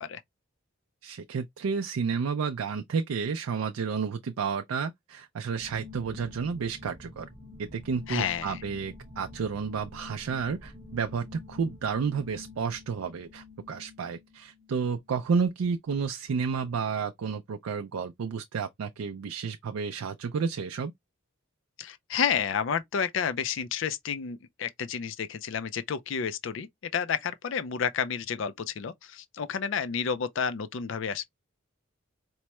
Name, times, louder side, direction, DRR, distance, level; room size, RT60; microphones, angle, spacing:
voice 1, 1.0-7.3 7.6-20.9, right 5 dB, 80° right, 0.4 m, -31 dB
sound 1, 5.6-15.1, left 2 dB, 15° right, 0.8 m, -47 dB
voice 2, 8.1-8.6 21.8-26.7 26.9-31.2, left 7 dB, 60° left, 0.4 m, -30 dB
4.5 x 2.1 x 2.9 m
head